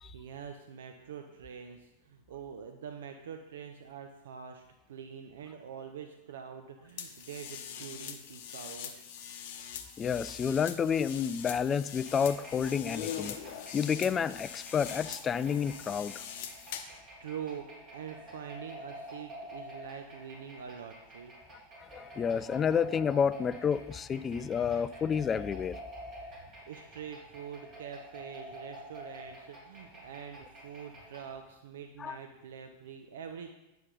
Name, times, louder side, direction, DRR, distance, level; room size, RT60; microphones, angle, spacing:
voice 1, 0.1-9.1 16.9-21.3 26.3-33.5, right 7 dB, 60° right, 5 dB, 0.6 m, -45 dB
sound 1, 7.0-17.0, left 9 dB, 50° left, 0.8 m, -43 dB
voice 2, 10.0-13.4 13.7-16.1 21.9-25.8 32.0-32.2, left 7 dB, 20° left, 16 dB, 0.3 m, -30 dB
sound 2, 12.0-31.3, equal, 30° right, 2.8 m, -49 dB
9.6 x 6.8 x 4.0 m, 1.0 s
figure-of-eight pair, 90°, 0 cm